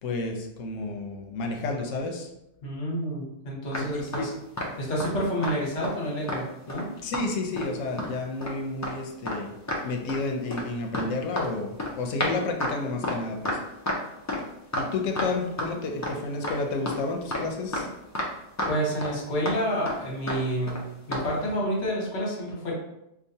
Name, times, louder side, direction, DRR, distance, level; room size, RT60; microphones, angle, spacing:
voice 1, 0.0-2.3 3.8-4.3 7.0-9.5 9.8-13.6 14.7-17.9, left 3 dB, 85° left, 3 dB, 1.0 m, -31 dB
voice 2, 2.6-4.3 4.8-6.9 18.7-20.8 21.1-22.7, equal, 70° left, -3 dB, 1.3 m, -29 dB
sound 1, 3.7-5.1 5.4-5.6 5.8-6.8 7.1-7.3 7.6-8.1 8.4-8.6 8.8-8.9 9.2-9.4 9.7-10.2 10.5-15.7 16.0-16.1 16.4-18.3 18.6-19.1 19.4-19.6 19.8-20.0 20.3-20.4 20.7-20.8 21.1-21.3, left 1 dB, 25° left, 0.4 m, -30 dB
4.8 x 2.3 x 2.7 m, 0.84 s
omnidirectional pair, 1.3 m